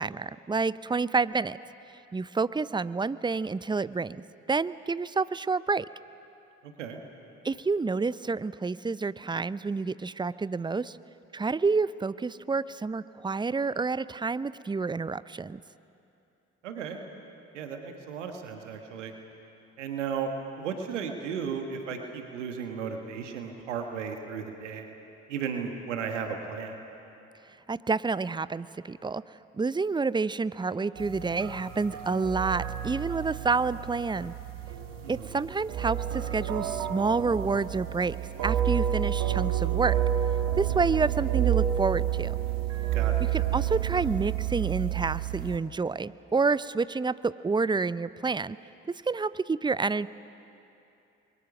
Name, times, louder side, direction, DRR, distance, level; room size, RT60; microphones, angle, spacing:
voice 1, 0.0-1.6 2.1-5.9 7.4-11.0 11.3-15.6 27.7-34.3 35.1-38.2 38.4-40.0 40.5-42.3 43.3-48.6 48.9-50.1, right 4 dB, 15° right, 17 dB, 0.5 m, -29 dB
voice 2, 6.6-7.0 16.6-17.0 17.5-19.1 19.8-20.3 20.6-24.9 25.3-26.8 35.0-35.4 42.9-43.2, right 6 dB, 85° right, 5 dB, 1.4 m, -35 dB
sound 1, 31.0-45.6, right 11 dB, 65° right, 1.8 m, -29 dB
28.0 x 22.5 x 6.1 m, 2.8 s
hypercardioid pair, 45°, 35 cm